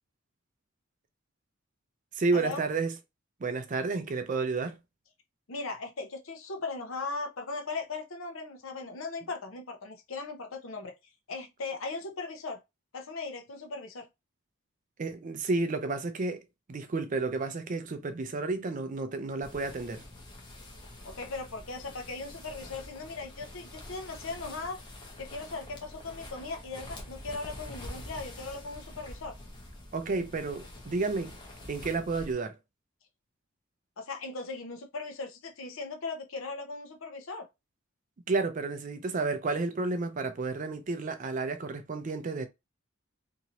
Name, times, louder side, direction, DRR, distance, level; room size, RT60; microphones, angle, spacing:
voice 1, 2.1-2.9 3.4-4.8 15.0-20.0 29.9-31.4 31.7-32.5 38.3-42.5, right 3 dB, 35° right, 0.4 m, -31 dB
voice 2, 5.5-10.9 11.3-12.6 12.9-14.1 21.0-24.8 25.2-29.3 34.0-37.5, left 3 dB, 70° left, 0.7 m, -38 dB
sound 1, 19.4-32.3, left 1 dB, 20° left, 0.7 m, -46 dB
2.9 x 2.6 x 2.8 m
head